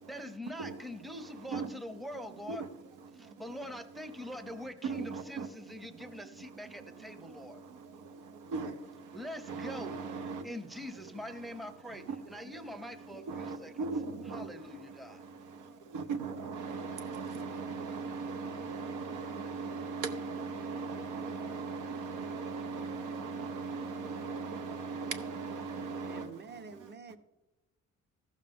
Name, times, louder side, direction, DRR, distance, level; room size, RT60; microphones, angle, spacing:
voice 1, 0.1-2.6 3.1-7.6 9.1-10.0 10.4-13.7 14.3-15.2, left 1 dB, ahead, 0.6 m, -44 dB
voice 2, 4.8-5.5 8.5-8.7 9.5-10.4 13.3-14.5 15.9-26.3, right 4 dB, 85° right, 0.8 m, -38 dB
voice 3, 26.1-27.2, right 5 dB, 35° right, 0.8 m, -48 dB
14.5 x 6.5 x 3.5 m
cardioid pair, 90°, 30 cm